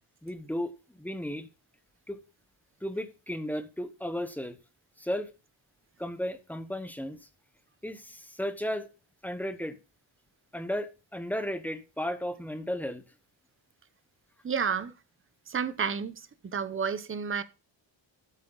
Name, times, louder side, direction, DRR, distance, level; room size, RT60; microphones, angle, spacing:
voice 1, 0.2-1.5 2.1-2.2 2.8-4.6 5.0-5.3 6.0-7.2 7.8-8.9 9.2-9.8 10.5-13.0, equal, 5° left, 0.9 m, -34 dB
voice 2, 14.4-14.9 15.5-16.3 16.5-17.4, right 6 dB, 25° right, 0.8 m, -30 dB
12.0 x 8.2 x 3.9 m
wide cardioid pair, 160°, 47 cm